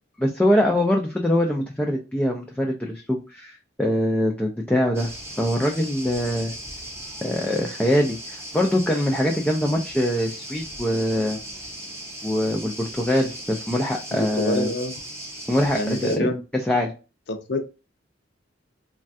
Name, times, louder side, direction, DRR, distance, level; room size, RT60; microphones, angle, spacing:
voice 1, 0.2-5.1 5.4-6.5 7.2-11.4 12.2-14.7 15.5-16.3 16.7-16.9, left 1 dB, 5° left, 0.4 m, -23 dB
sound 1, 4.9-16.2, right 1 dB, 15° right, 0.8 m, -37 dB
voice 2, 14.1-14.9 15.7-16.4 17.3-17.6, left 1 dB, 65° left, 0.6 m, -26 dB
3.1 x 2.3 x 2.6 m
head